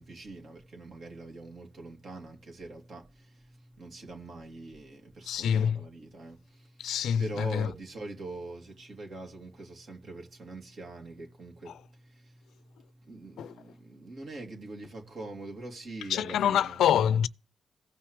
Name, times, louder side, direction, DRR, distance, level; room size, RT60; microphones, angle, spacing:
voice 1, 0.0-16.8, right 2 dB, 65° right, 2.8 m, -44 dB
voice 2, 5.2-5.8 6.8-7.7 11.7-11.8 13.4-13.5 16.1-17.3, left 9 dB, 85° left, 0.4 m, -26 dB
16.5 x 5.7 x 3.3 m
supercardioid pair, 50°, 0 cm